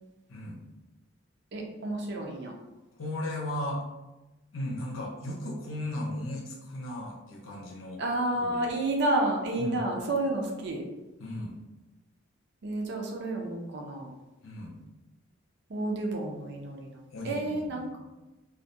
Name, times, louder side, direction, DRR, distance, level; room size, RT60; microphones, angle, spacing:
voice 1, 1.5-2.5 8.0-10.8 12.6-14.1 15.7-18.0, right 2 dB, 55° right, 1 dB, 0.5 m, -30 dB
voice 2, 3.0-3.8 4.5-8.0 8.3-8.8 9.6-9.8 11.2-11.5 14.4-14.7 17.1-17.9, left 1 dB, 75° left, -2 dB, 0.6 m, -36 dB
2.3 x 2.1 x 2.6 m, 1.1 s
head